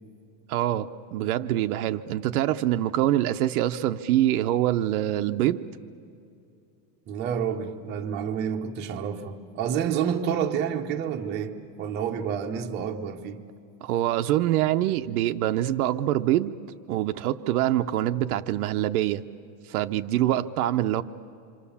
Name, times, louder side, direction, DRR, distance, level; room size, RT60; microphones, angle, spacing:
voice 1, 0.5-5.6 13.8-16.6 16.9-19.2 19.7-21.0, right 13 dB, 60° right, 0.8 m, -25 dB
voice 2, 7.1-13.4, right 8 dB, 20° right, 0.8 m, -29 dB
27.0 x 25.5 x 7.1 m
supercardioid pair, 180°, 49 cm